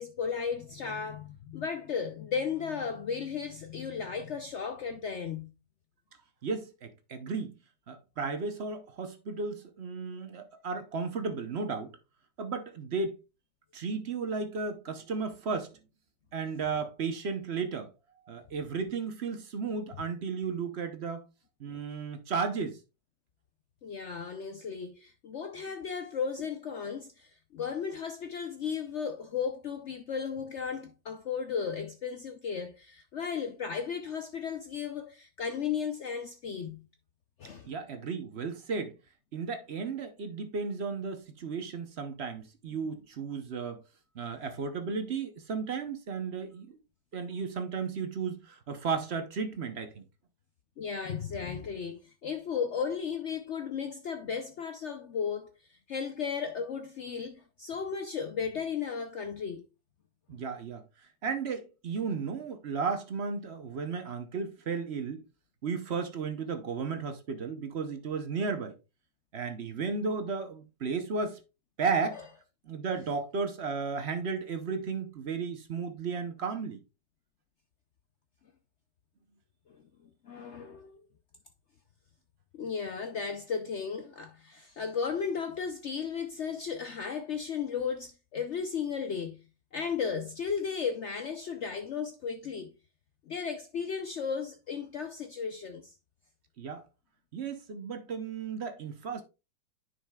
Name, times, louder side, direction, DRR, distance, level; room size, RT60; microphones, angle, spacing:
voice 1, 0.0-5.5 21.7-21.8 23.8-36.8 37.4-37.7 50.8-59.6 80.2-81.0 82.5-89.4 89.7-92.7 93.3-95.9, left 6 dB, 85° left, 0.6 m, -35 dB
voice 2, 6.4-7.5 7.9-11.9 12.4-13.2 13.7-15.8 16.3-17.9 18.3-21.2 21.6-22.8 37.6-39.0 39.3-43.8 44.1-46.8 47.1-50.0 60.3-60.8 61.2-65.2 65.6-68.8 69.3-71.4 71.8-72.2 72.7-76.8 96.6-96.8 97.3-99.2, right 5 dB, 50° right, 0.8 m, -34 dB
10.0 x 5.7 x 2.3 m
omnidirectional pair, 2.0 m